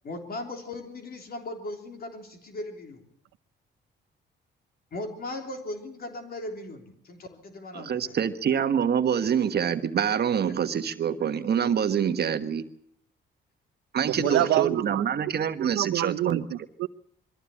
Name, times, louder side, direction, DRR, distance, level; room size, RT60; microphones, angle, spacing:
voice 1, 0.0-3.0 4.9-8.1 14.2-14.8, left 2 dB, 50° left, 4 dB, 3.5 m, -37 dB
voice 2, 7.7-12.6 13.9-16.5, right 8 dB, 55° right, 9 dB, 1.3 m, -26 dB
voice 3, 14.0-15.0 15.6-16.9, right 14 dB, 85° right, 15 dB, 0.8 m, -27 dB
23.0 x 14.5 x 8.6 m, 0.66 s
cardioid pair, 90°, 20 cm